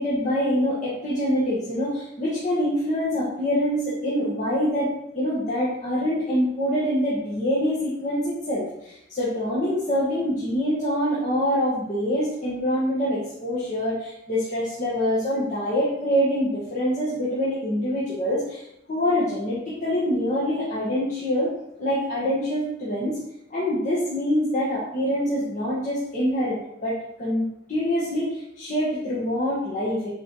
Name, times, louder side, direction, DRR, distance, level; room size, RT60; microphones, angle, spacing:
voice 1, 0.0-4.9 5.1-21.5 21.8-23.2 23.5-30.1, equal, 40° left, -9 dB, 2.2 m, -25 dB
7.7 x 5.3 x 5.0 m, 0.80 s
head